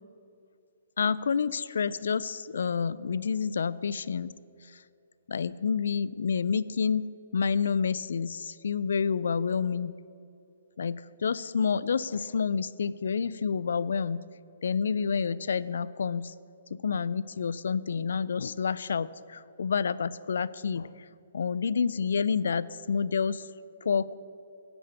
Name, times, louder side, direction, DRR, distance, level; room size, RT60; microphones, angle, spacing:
voice 1, 1.0-4.3 4.6-4.8 5.3-7.1 7.3-9.9 10.8-14.2 14.6-16.3 16.7-21.1 21.3-23.5 23.8-24.2, left 6 dB, 80° left, 19 dB, 0.3 m, -29 dB
9.9 x 5.1 x 8.1 m, 2.6 s
hypercardioid pair, 155°, 0 cm